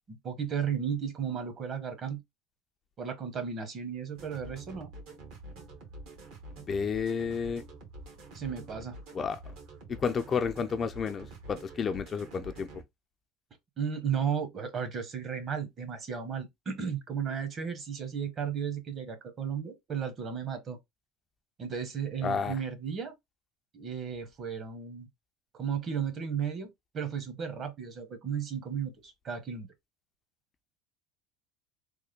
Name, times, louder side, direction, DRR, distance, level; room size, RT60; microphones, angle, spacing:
voice 1, 0.1-2.2 3.0-4.9 8.3-8.9 13.8-20.8 21.6-23.1 23.7-25.1 25.5-29.7, right 7 dB, 40° right, 1.0 m, -34 dB
sound 1, 4.1-12.8, right 2 dB, 70° right, 1.5 m, -47 dB
voice 2, 6.6-7.6 9.1-9.4 9.9-12.8 22.2-22.6, left 6 dB, 30° left, 0.4 m, -31 dB
3.4 x 2.1 x 3.5 m
supercardioid pair, 120°, 0 cm